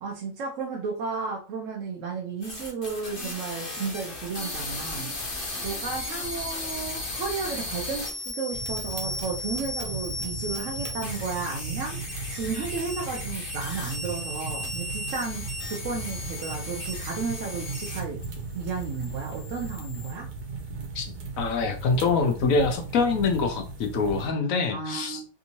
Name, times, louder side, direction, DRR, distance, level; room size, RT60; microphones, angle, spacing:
voice 1, 0.0-18.2 18.5-20.3 24.7-25.3, right 5 dB, 60° right, -1 dB, 0.9 m, -33 dB
sound 1, 2.4-18.2 18.5-20.1, left 2 dB, 40° left, 1.0 m, -36 dB
sound 2, 8.5-24.3, right 3 dB, 85° right, 1.4 m, -37 dB
voice 2, 21.4-25.2, left 4 dB, 65° left, 6 dB, 0.9 m, -25 dB
3.5 x 2.7 x 2.8 m, 0.36 s
omnidirectional pair, 1.8 m